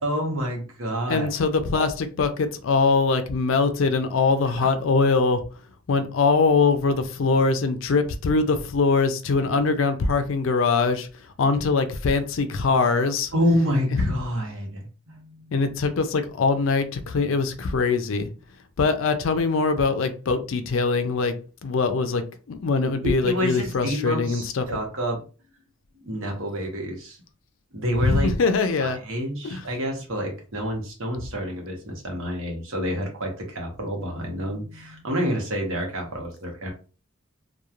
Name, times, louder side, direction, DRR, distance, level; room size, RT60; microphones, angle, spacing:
voice 1, 0.0-1.3 4.6-4.7 13.3-15.6 23.0-25.2 26.0-27.2 27.7-28.3 28.8-36.7, equal, 75° right, 1 dB, 0.9 m, -28 dB
voice 2, 1.1-5.4 5.9-11.1 11.4-13.3 14.0-14.1 15.5-18.3 18.8-21.3 21.6-24.8 28.0-29.0 29.4-29.6, left 4 dB, 70° left, 9 dB, 0.4 m, -22 dB
3.0 x 2.2 x 2.4 m, 0.35 s
head